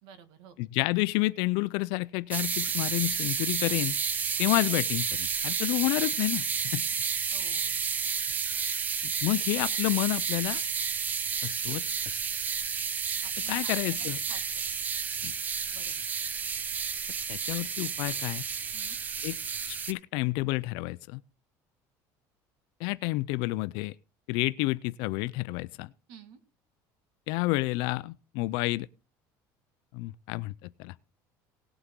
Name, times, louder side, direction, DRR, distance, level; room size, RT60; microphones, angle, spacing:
voice 1, 0.0-0.6 7.3-7.9 13.2-14.4 15.7-16.1 18.7-19.0 26.1-26.4, right 7 dB, 65° right, 1.9 m, -51 dB
voice 2, 0.6-3.9 4.4-6.4 6.7-6.8 9.0-10.6 11.4-12.2 13.5-14.2 15.2-15.3 17.3-18.4 19.2-19.4 19.7-21.2 22.8-23.9 24.3-25.9 27.3-28.9 29.9-30.9, left 21 dB, 70° left, 0.5 m, -30 dB
sound 1, 2.3-19.9, right 6 dB, 20° right, 0.5 m, -31 dB
18.0 x 8.0 x 3.8 m
cardioid pair, 180°, 8 cm